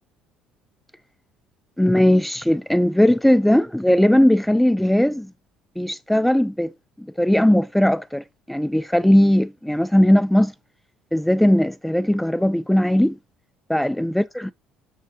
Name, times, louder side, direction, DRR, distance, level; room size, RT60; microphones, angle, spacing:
voice 1, 1.8-5.3 5.8-6.7 7.0-10.5 11.1-13.2 13.7-14.5, left 1 dB, 5° left, 0.3 m, -18 dB
9.3 x 3.7 x 3.9 m
supercardioid pair, 80°, 2 cm